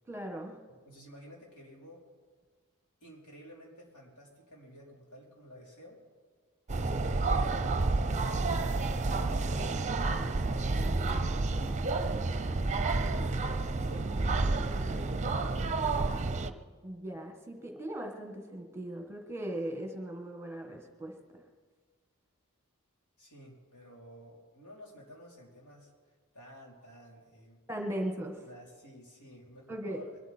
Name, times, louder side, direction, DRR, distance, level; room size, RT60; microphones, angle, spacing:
voice 1, 0.1-0.6 16.8-21.4 27.7-28.5 29.7-30.0, right 1 dB, 10° right, 3 dB, 1.6 m, -38 dB
voice 2, 0.8-2.0 3.0-6.0 6.7-7.8 8.1-11.2 12.6-16.2 23.2-25.9 26.3-27.6 28.5-30.2, equal, 90° left, -3 dB, 4.6 m, -52 dB
sound 1, 6.7-16.5, right 3 dB, 30° right, 0.7 m, -30 dB
22.5 x 12.5 x 4.5 m, 1.5 s
head